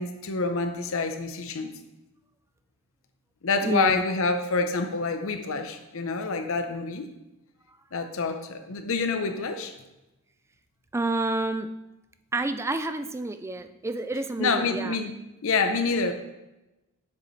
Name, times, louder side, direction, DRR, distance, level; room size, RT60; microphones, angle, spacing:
voice 1, 0.0-1.7 3.4-7.1 7.9-9.7 14.4-15.1 15.4-16.1, left 4 dB, 65° left, 7 dB, 0.8 m, -27 dB
voice 2, 3.6-4.0 10.9-11.7 12.3-15.0, right 2 dB, 10° right, 10 dB, 0.3 m, -29 dB
7.6 x 7.0 x 3.2 m, 0.99 s
head